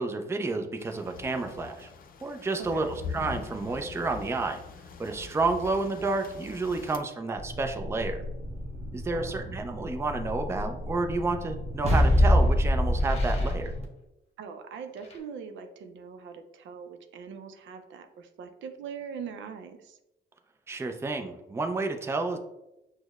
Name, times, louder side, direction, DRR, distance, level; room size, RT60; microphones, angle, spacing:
voice 1, 0.0-1.9 2.2-4.6 5.0-8.2 8.9-13.7 20.7-22.4, right 3 dB, 15° right, 5 dB, 0.4 m, -30 dB
sound 1, 0.8-7.0, left 5 dB, 45° left, 0.4 m, -42 dB
voice 2, 2.6-2.9 9.1-9.4 14.4-20.0, right 6 dB, 70° right, 7 dB, 0.5 m, -42 dB
sound 2, 7.4-13.8, left 1 dB, 30° right, 0.7 m, -27 dB
sound 3, 13.0-13.8 14.9-15.2, left 2 dB, 30° left, 0.9 m, -48 dB
6.1 x 2.1 x 2.3 m, 0.91 s
cardioid pair, 90°, 20 cm